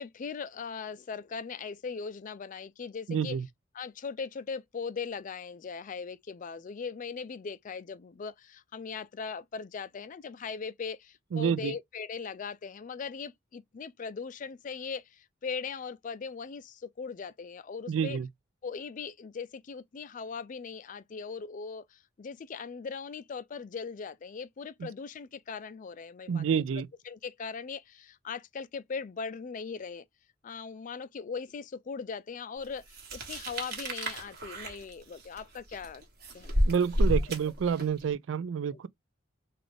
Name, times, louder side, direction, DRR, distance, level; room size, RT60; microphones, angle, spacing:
voice 1, 0.0-3.4 3.7-18.2 18.6-26.6 27.0-30.0 30.4-36.0 36.3-36.7 38.7-38.9, left 5 dB, 40° left, 0.4 m, -39 dB
voice 2, 3.1-3.4 11.3-11.7 17.9-18.3 24.8-24.9 26.3-26.9 36.7-38.9, right 7 dB, 70° right, 0.3 m, -28 dB
sound 1, 32.9-38.0, equal, 55° right, 1.4 m, -31 dB
3.8 x 2.4 x 3.3 m
head